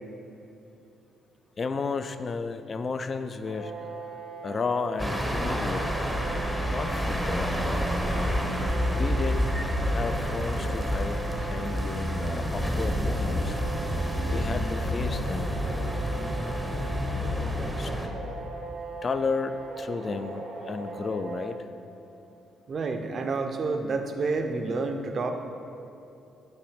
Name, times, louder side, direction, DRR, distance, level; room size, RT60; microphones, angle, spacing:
voice 1, 1.6-3.7 4.4-6.0 6.7-7.6 8.9-9.5 9.8-13.6 14.3-15.6 17.8-17.9 19.0-21.7, left 4 dB, 40° left, 10 dB, 0.3 m, -33 dB
sound 1, 3.5-21.5, right 3 dB, 85° right, 0.9 m, -39 dB
sound 2, 5.0-18.1, equal, ahead, 0.7 m, -28 dB
voice 2, 22.7-25.3, right 3 dB, 50° right, 6 dB, 0.5 m, -29 dB
8.5 x 3.1 x 4.9 m, 2.9 s
cardioid pair, 90°, 0 cm